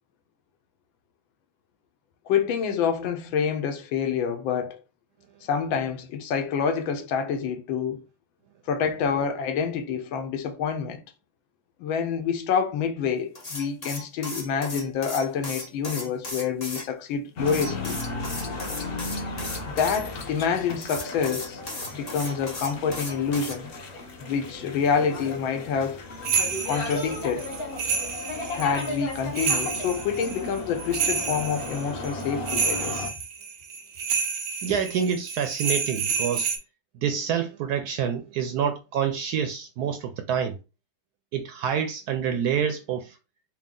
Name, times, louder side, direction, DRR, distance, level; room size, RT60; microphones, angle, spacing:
voice 1, 2.3-4.8 5.4-8.0 8.7-11.0 11.8-18.0 19.6-21.6 21.9-23.7 24.2-26.0 26.6-27.5 28.5-33.1, left 6 dB, 85° left, 1.5 m, -27 dB
sound 1, 13.3-16.9 17.5-20.0 20.8-23.6, left 2 dB, 30° left, 0.8 m, -36 dB
sound 2, 17.4-33.1, left 2 dB, 60° left, 0.6 m, -35 dB
sound 3, 26.2-36.6, right 5 dB, 90° right, 1.4 m, -29 dB
voice 2, 34.6-36.5 37.0-40.5 41.3-43.2, right 8 dB, 75° right, 0.9 m, -27 dB
4.6 x 2.2 x 3.7 m
omnidirectional pair, 2.1 m